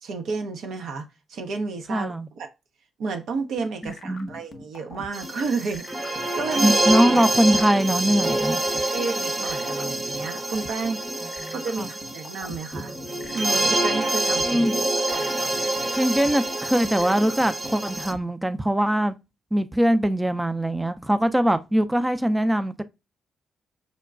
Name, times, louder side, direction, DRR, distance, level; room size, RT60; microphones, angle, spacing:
voice 1, 0.0-2.5 3.0-6.7 8.9-11.0 11.5-12.9 13.3-14.7 15.1-15.5, right 4 dB, 70° right, 0.5 m, -31 dB
voice 2, 1.9-2.3 3.8-4.3 6.6-8.6 11.2-11.9 14.5-14.7 15.9-19.1 19.5-22.8, equal, 15° right, 0.4 m, -22 dB
sound 1, 3.3-18.2, left 3 dB, 50° left, 0.6 m, -41 dB
sound 2, 5.1-18.1, right 2 dB, 35° right, 0.8 m, -26 dB
5.0 x 2.2 x 2.3 m
hypercardioid pair, 45°, 0 cm